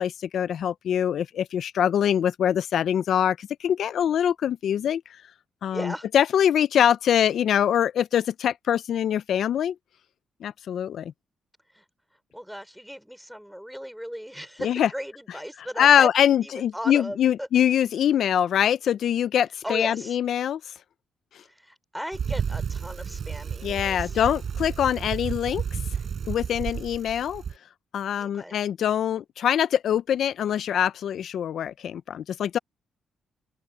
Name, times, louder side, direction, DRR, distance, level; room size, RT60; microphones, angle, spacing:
voice 1, 0.0-5.0 5.6-9.7 10.4-11.1 14.6-14.9 15.8-20.7 23.6-25.8 26.3-27.4 27.9-32.6, left 9 dB, 70° left, 0.5 m, -23 dB
voice 2, 5.7-6.1 11.7-11.8 12.3-17.5 19.6-20.2 21.6-24.2 28.2-28.6, equal, ahead, 5.2 m, -36 dB
Bicycle, 22.1-27.6, right 7 dB, 55° right, 6.7 m, -32 dB
open air
cardioid pair, 80°, 0 cm